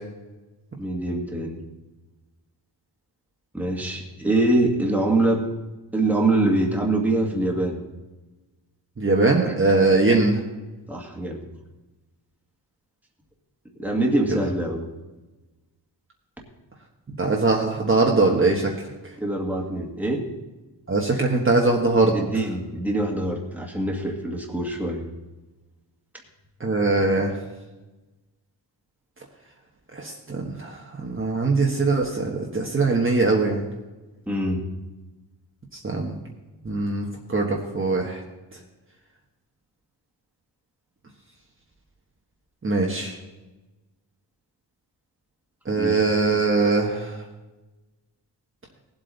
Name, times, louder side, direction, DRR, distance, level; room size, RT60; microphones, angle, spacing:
voice 1, 0.8-1.6 3.5-5.4 5.9-7.8 9.3-9.6 10.9-11.4 13.8-14.8 19.2-20.2 22.1-25.0 34.3-34.7 45.8-46.0, right 2 dB, 5° right, 0 dB, 1.9 m, -24 dB
voice 2, 9.0-10.4 17.2-18.7 20.9-22.1 26.6-27.4 29.9-33.7 35.8-36.1 36.6-38.2 42.6-43.1 45.6-47.2, right 3 dB, 30° right, -1 dB, 1.4 m, -21 dB
19.0 x 8.0 x 4.0 m, 1.1 s
wide cardioid pair, 140°, 44 cm